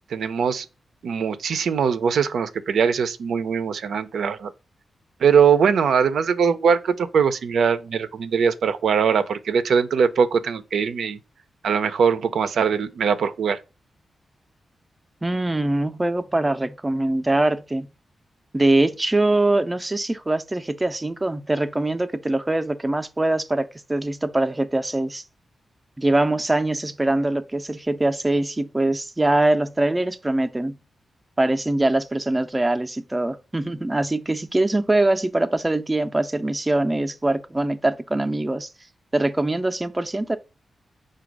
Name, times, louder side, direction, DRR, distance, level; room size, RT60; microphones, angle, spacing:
voice 1, 0.1-0.6 1.0-4.5 5.2-11.2 11.6-13.6, right 6 dB, 85° right, 0.4 m, -21 dB
voice 2, 15.2-17.9 18.5-25.2 26.0-30.7 31.4-38.7 39.1-40.4, right 2 dB, 15° right, 0.4 m, -23 dB
5.0 x 2.3 x 4.5 m
cardioid pair, 90°, 0 cm